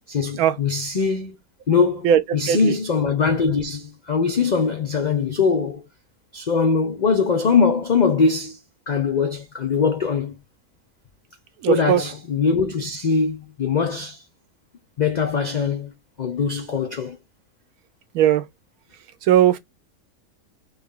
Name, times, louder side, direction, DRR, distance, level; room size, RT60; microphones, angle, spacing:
voice 1, 0.1-1.4 1.7-5.8 6.3-8.6 8.9-10.4 11.7-14.2 15.0-17.2, left 5 dB, 80° left, 0.4 m, -22 dB
voice 2, 11.6-12.0 18.1-18.4 19.2-19.6, right 10 dB, 85° right, 1.1 m, -17 dB
3.3 x 2.3 x 3.6 m
omnidirectional pair, 1.5 m